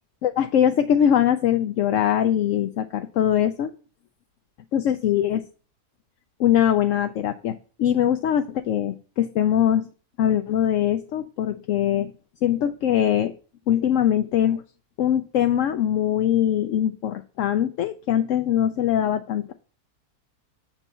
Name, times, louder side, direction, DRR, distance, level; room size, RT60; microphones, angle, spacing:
voice 1, 0.2-3.7 4.7-5.4 6.4-9.9 10.2-12.1 12.4-13.3 13.7-14.6 15.0-19.5, left 10 dB, 65° left, 8 dB, 0.8 m, -22 dB
7.2 x 4.6 x 6.8 m, 0.38 s
omnidirectional pair, 1.7 m